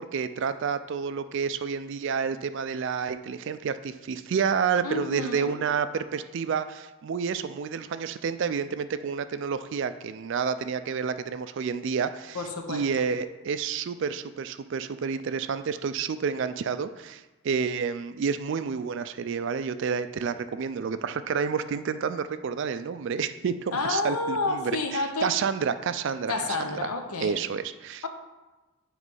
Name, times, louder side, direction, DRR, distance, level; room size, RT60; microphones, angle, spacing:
voice 1, 0.0-12.4 12.7-26.9 27.2-28.0, right 6 dB, 55° right, 12 dB, 0.3 m, -29 dB
voice 2, 4.8-5.6 12.3-12.8 23.7-25.3 26.3-27.4, left 3 dB, 85° left, 5 dB, 0.8 m, -29 dB
8.0 x 3.2 x 5.3 m, 1.1 s
head